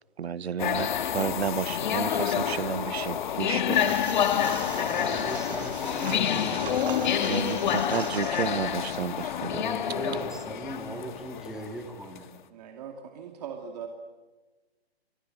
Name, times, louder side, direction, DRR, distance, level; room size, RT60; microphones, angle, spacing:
voice 1, 0.2-4.0 7.3-9.7, right 8 dB, 80° right, 19 dB, 0.9 m, -32 dB
sound 1, 0.6-12.2, left 9 dB, 45° left, 1.7 m, -28 dB
voice 2, 2.0-3.2 4.7-8.2 9.5-12.3, right 2 dB, ahead, 4 dB, 2.4 m, -40 dB
sound 2, 3.7-9.0, right 6 dB, 55° right, 6.4 m, -41 dB
voice 3, 12.5-13.9, right 7 dB, 40° right, 4 dB, 2.6 m, -40 dB
29.0 x 25.0 x 7.8 m, 1.2 s
hypercardioid pair, 150°, 32 cm